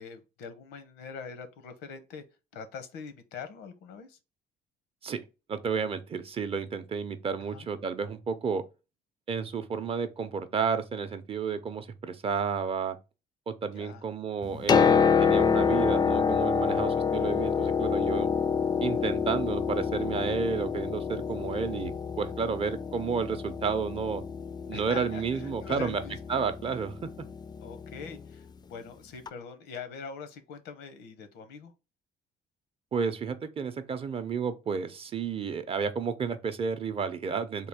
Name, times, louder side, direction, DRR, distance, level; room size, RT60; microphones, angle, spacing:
voice 1, 0.0-2.2 2.5-4.2 7.4-7.7 13.7-14.0 24.7-26.2 27.6-31.7, left 6 dB, 90° left, 0.8 m, -43 dB
voice 2, 5.5-8.6 9.3-13.0 13.5-18.3 18.8-21.9 22.2-24.2 24.7-26.0 26.3-27.3 32.9-37.7, right 6 dB, 35° right, 0.5 m, -31 dB
Piano, 14.4-28.2 29.3-29.4, left 6 dB, 25° left, 0.3 m, -27 dB
3.6 x 2.4 x 3.5 m
cardioid pair, 110°, 17 cm